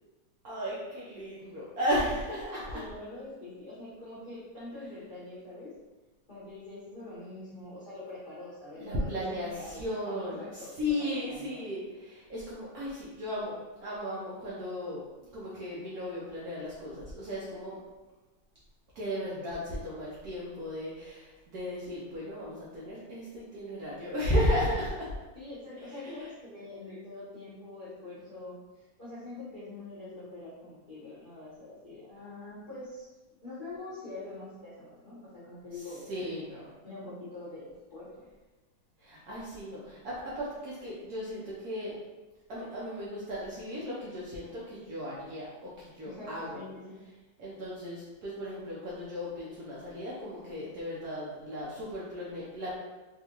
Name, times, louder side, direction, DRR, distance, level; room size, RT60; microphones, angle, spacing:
voice 1, 0.4-2.8 8.8-15.0 15.3-17.8 18.9-25.1 25.9-26.3 35.7-35.8 36.1-36.7 39.0-41.9 42.5-46.6 47.4-52.8, left 1 dB, 65° right, -7 dB, 1.1 m, -35 dB
voice 2, 2.7-5.7 6.3-11.6 25.3-33.1 33.4-36.0 36.8-38.3 46.0-47.0, left 2 dB, 30° left, -13 dB, 1.1 m, -44 dB
3.6 x 2.5 x 2.9 m, 1.2 s
omnidirectional pair, 2.0 m